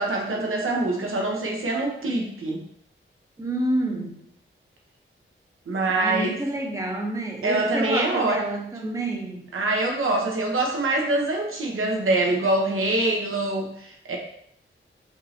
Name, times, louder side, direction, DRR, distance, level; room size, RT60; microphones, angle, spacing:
voice 1, 0.0-2.6 5.7-6.4 7.4-8.4 8.8-8.9 9.5-14.2, right 2 dB, 80° right, 0 dB, 1.0 m, -24 dB
voice 2, 3.4-4.2 5.9-9.5, right 1 dB, 15° right, 1 dB, 0.7 m, -28 dB
5.2 x 3.2 x 2.8 m, 0.70 s
wide cardioid pair, 130°, 21 cm